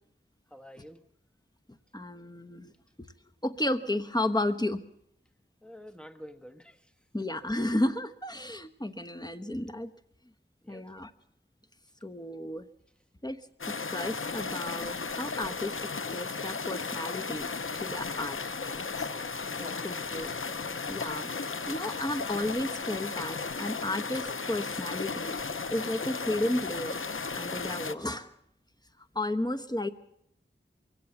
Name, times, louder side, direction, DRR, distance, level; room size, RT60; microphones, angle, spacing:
voice 1, 0.5-1.0 5.6-6.8 10.6-10.8 19.4-19.8, equal, 5° left, 1.4 m, -48 dB
voice 2, 1.9-2.7 3.4-4.8 7.1-9.9 10.7-11.1 12.0-12.7 13.2-13.4 13.6-17.5 17.8-18.4 18.6-19.1 19.8-20.4 20.9-21.3 21.7-25.3 25.7-27.0 27.4-28.3 29.1-29.9, left 1 dB, 20° left, 1.2 m, -33 dB
sound 1, 13.6-28.0, left 4 dB, 80° left, 0.7 m, -35 dB
22.5 x 17.0 x 7.1 m
wide cardioid pair, 45°, 20 cm